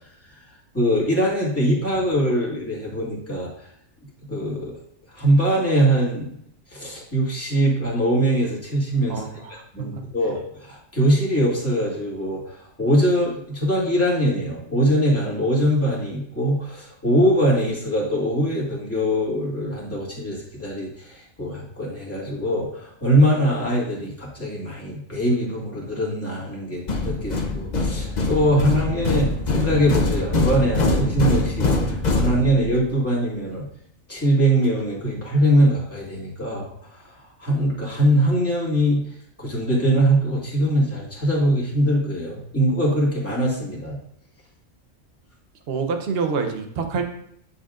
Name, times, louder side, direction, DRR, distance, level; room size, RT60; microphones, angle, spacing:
voice 1, 0.7-3.5 4.3-4.7 5.1-6.4 6.7-9.3 9.7-33.7 34.1-37.1 37.4-39.0 39.4-44.0, equal, 10° left, -6 dB, 2.1 m, -22 dB
voice 2, 9.1-9.9 45.7-47.1, right 5 dB, 50° right, 5 dB, 1.0 m, -27 dB
sound 1, 26.9-32.9, left 3 dB, 40° left, 0.8 m, -23 dB
9.7 x 5.6 x 2.5 m, 0.70 s
omnidirectional pair, 1.4 m